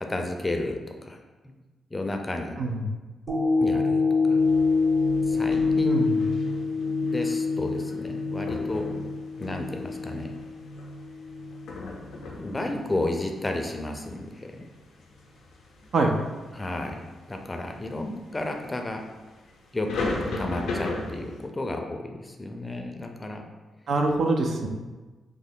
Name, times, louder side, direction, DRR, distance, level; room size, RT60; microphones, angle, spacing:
voice 1, 0.0-1.2 1.9-2.6 3.6-4.4 5.3-6.1 7.1-8.9 9.4-10.4 12.4-14.6 16.5-17.0 17.3-19.0 19.7-23.4, left 2 dB, 25° left, 4 dB, 0.5 m, -32 dB
sound 1, 3.3-11.7 12.2-12.3, left 4 dB, 20° right, 0.8 m, -26 dB
sound 2, 4.4-21.5, left 2 dB, 80° left, 0.5 m, -38 dB
voice 2, 5.9-6.2 15.9-16.2 23.9-24.7, right 2 dB, 65° right, 3 dB, 0.4 m, -24 dB
3.2 x 2.0 x 3.6 m, 1.2 s
supercardioid pair, 55°, 0 cm